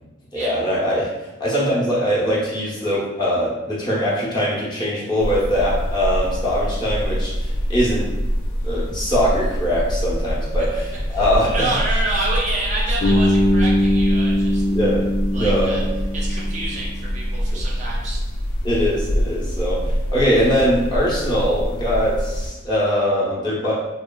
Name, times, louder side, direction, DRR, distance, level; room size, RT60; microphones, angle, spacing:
voice 1, 0.3-1.1 1.4-8.1 8.6-11.7 14.7-15.0 15.3-15.8 18.6-23.7, equal, 20° left, -7 dB, 0.6 m, -21 dB
sound 1, 5.2-22.5, equal, 90° left, 0.4 m, -25 dB
voice 2, 11.1-14.6 15.3-15.8 16.1-18.2, right 2 dB, 35° right, -4 dB, 0.4 m, -28 dB
Bass guitar, 13.0-17.0, left 1 dB, 65° left, 0.8 m, -20 dB
2.9 x 2.1 x 2.3 m, 1.1 s
head